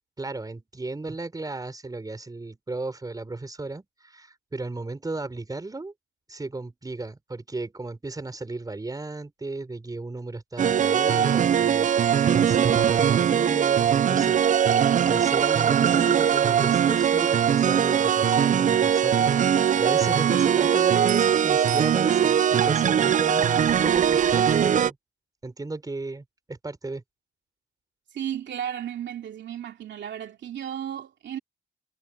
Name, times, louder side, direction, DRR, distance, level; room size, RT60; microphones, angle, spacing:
voice 1, 0.2-5.9 6.3-25.0 25.4-27.0, right 2 dB, 20° right, 4.4 m, -35 dB
sound 1, 10.6-24.9, right 8 dB, 40° right, 0.5 m, -21 dB
voice 2, 28.1-31.4, right 10 dB, 65° right, 3.0 m, -34 dB
cardioid pair, 90°, 20 cm